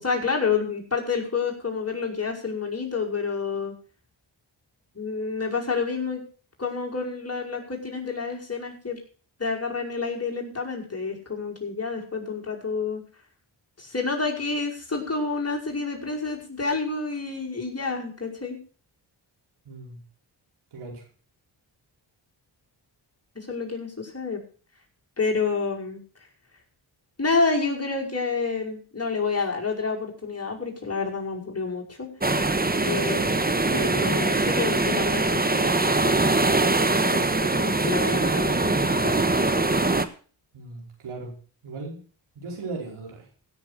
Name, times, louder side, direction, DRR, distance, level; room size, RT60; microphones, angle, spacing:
voice 1, 0.0-3.7 4.9-6.2 6.6-9.0 9.4-13.0 13.8-18.6 23.4-24.4 25.2-26.0 27.2-32.1 32.8-33.3 33.7-36.1 37.1-38.7 39.0-39.2, left 4 dB, 30° left, -1 dB, 5.4 m, -29 dB
voice 2, 19.6-20.0 20.7-21.0 40.5-41.3 41.6-42.0 42.3-43.2, right 3 dB, 85° right, 0 dB, 5.0 m, -37 dB
sound 1, 32.2-40.0, right 2 dB, 20° right, 1.4 m, -22 dB
16.0 x 7.0 x 6.6 m, 0.40 s
cardioid pair, 50°, 48 cm